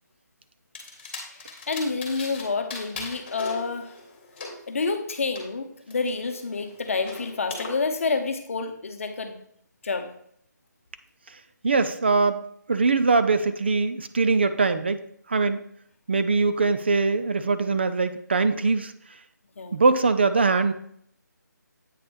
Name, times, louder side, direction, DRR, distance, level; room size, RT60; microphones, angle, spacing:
sound 1, 0.7-2.4 2.7-5.4 5.9-7.7, left 3 dB, 30° left, 1.4 m, -39 dB
voice 1, 1.3-3.9 4.7-9.4 9.8-10.1 19.6-19.8, left 4 dB, 45° left, 7 dB, 0.8 m, -29 dB
voice 2, 11.6-12.4 12.7-15.0 15.3-15.6 16.1-18.9 19.7-20.7, right 4 dB, 35° right, 10 dB, 0.3 m, -22 dB
8.3 x 3.3 x 4.3 m, 0.67 s
hypercardioid pair, 170°, 10 cm